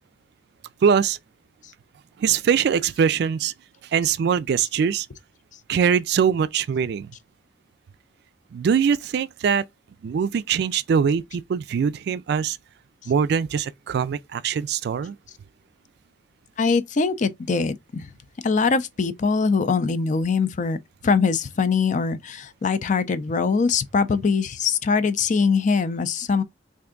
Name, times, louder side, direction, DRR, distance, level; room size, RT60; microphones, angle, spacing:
voice 1, 0.8-1.2 2.2-3.5 3.9-5.1 5.7-7.1 8.5-9.6 10.0-12.6 13.1-15.2, right 7 dB, 65° right, 0.3 m, -22 dB
voice 2, 16.6-18.1 18.4-20.8 21.0-26.4, left 5 dB, 45° left, 0.4 m, -22 dB
3.3 x 2.6 x 3.7 m
head